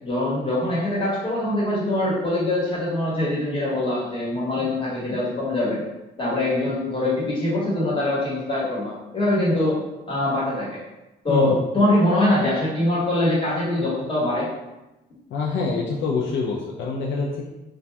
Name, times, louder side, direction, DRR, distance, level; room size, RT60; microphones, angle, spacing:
voice 1, 0.0-5.8 6.2-9.8 10.1-10.8 11.2-14.5, left 1 dB, 25° left, -7 dB, 1.4 m, -23 dB
voice 2, 15.3-17.5, left 4 dB, 70° left, -2 dB, 0.4 m, -25 dB
2.5 x 2.3 x 3.3 m, 1.0 s
cardioid pair, 90°, 20 cm